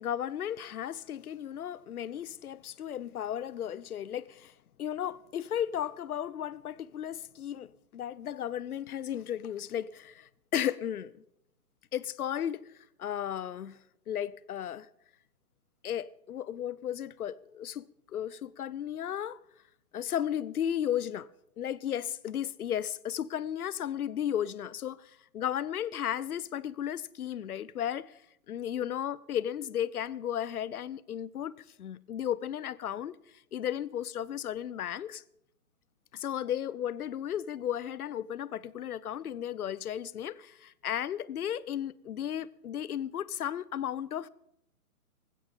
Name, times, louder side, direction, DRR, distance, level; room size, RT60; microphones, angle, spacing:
voice 1, 0.0-4.5 4.8-11.1 11.9-12.6 13.0-13.8 14.1-14.9 15.8-19.4 19.9-21.3 21.6-28.1 28.5-33.2 33.5-35.2 36.1-44.3, left 10 dB, 75° left, 0.8 m, -34 dB
19.5 x 16.0 x 3.8 m
hypercardioid pair, 155°, 45 cm